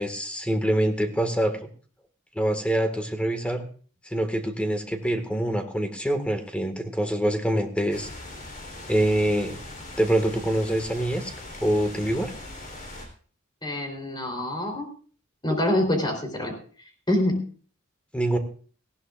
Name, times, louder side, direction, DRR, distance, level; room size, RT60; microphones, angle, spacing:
voice 1, 0.0-1.7 2.4-3.7 4.1-8.1 8.9-9.6 10.0-11.3 11.6-12.3 18.1-18.4, right 1 dB, 5° left, 6 dB, 1.8 m, -25 dB
sound 1, 7.9-13.1, left 2 dB, 40° left, 3.7 m, -40 dB
voice 2, 13.6-14.9 15.4-16.5 17.1-17.4, left 1 dB, 20° left, 3 dB, 3.7 m, -25 dB
19.0 x 16.0 x 2.5 m, 0.42 s
head